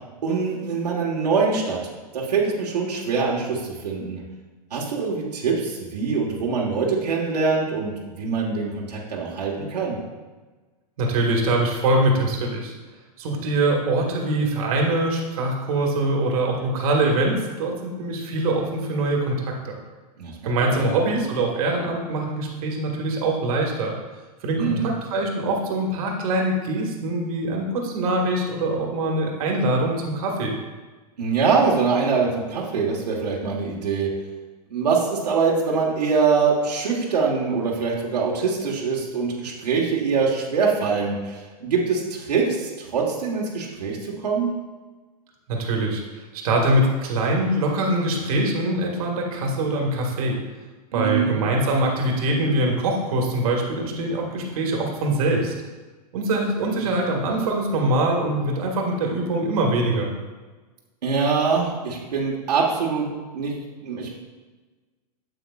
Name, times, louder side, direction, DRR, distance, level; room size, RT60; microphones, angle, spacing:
voice 1, 0.2-1.8 2.1-4.2 4.7-10.0 20.2-20.3 20.6-20.7 24.5-24.9 31.2-34.1 34.7-44.5 50.9-51.4 61.0-63.5 63.8-64.1, right 5 dB, 80° right, -3 dB, 1.5 m, -24 dB
voice 2, 11.0-12.7 13.2-19.7 20.4-23.9 24.4-30.5 45.5-46.0 46.4-50.4 50.9-55.5 56.1-60.1, right 2 dB, 60° right, 0 dB, 1.7 m, -23 dB
8.1 x 7.8 x 2.4 m, 1.3 s
hypercardioid pair, 125°, 20 cm